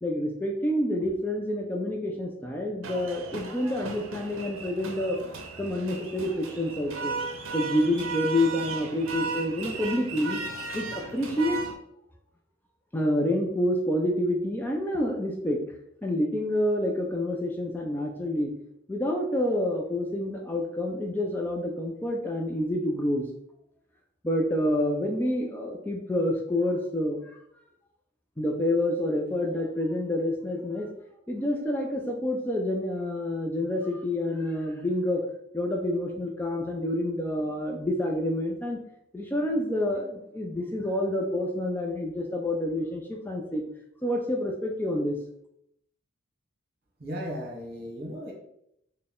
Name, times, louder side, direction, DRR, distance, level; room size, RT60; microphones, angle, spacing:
voice 1, 0.0-5.2 5.6-7.2 7.5-10.4 10.7-11.6 12.9-15.6 16.0-18.5 18.9-23.3 24.2-27.4 28.4-30.9 31.3-35.2 35.5-38.8 39.1-43.6 44.0-45.2, left 1 dB, 10° left, 1 dB, 0.3 m, -28 dB
sound 1, 2.8-11.7, right 4 dB, 90° right, 0.5 m, -36 dB
voice 2, 47.0-48.3, equal, 50° right, -1 dB, 1.0 m, -36 dB
3.9 x 2.1 x 3.6 m, 0.76 s
head